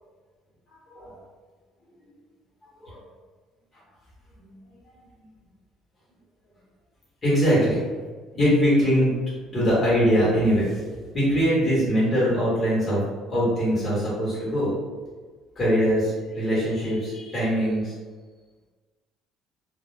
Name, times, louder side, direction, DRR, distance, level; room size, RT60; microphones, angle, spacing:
voice 1, 0.9-1.2 2.8-3.0 4.4-4.5 4.9-5.0 7.2-8.0 8.3-9.1 9.5-13.0 13.3-14.7 15.6-17.9, equal, 25° left, -7 dB, 1.0 m, -22 dB
2.1 x 2.1 x 3.1 m, 1.4 s
cardioid pair, 155°, 0 cm